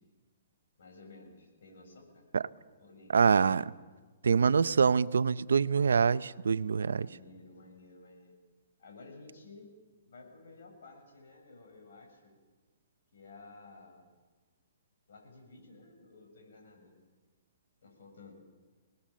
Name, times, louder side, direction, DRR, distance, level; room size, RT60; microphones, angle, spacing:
voice 1, 0.8-2.2 2.8-3.2 7.0-8.3 8.8-9.7 10.1-12.4 13.1-14.1 15.1-16.9 17.8-18.4, left 3 dB, 75° left, 7.2 m, -53 dB
voice 2, 3.1-3.7 4.2-7.1, right 5 dB, 90° right, 0.6 m, -25 dB
25.5 x 19.5 x 7.5 m
hypercardioid pair, 145°, 0 cm